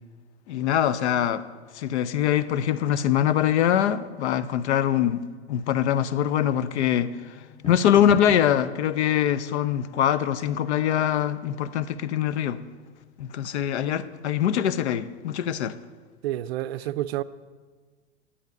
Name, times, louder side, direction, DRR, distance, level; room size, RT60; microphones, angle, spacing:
voice 1, 0.5-1.4 1.7-5.2 5.5-7.3 7.7-12.6 13.2-15.8, left 10 dB, 70° left, 0.6 m, -23 dB
sound 1, 3.1-13.9, left 5 dB, 15° left, 0.8 m, -48 dB
voice 2, 16.2-17.2, right 14 dB, 65° right, 0.5 m, -29 dB
9.9 x 8.1 x 5.2 m
hypercardioid pair, 95°, 35 cm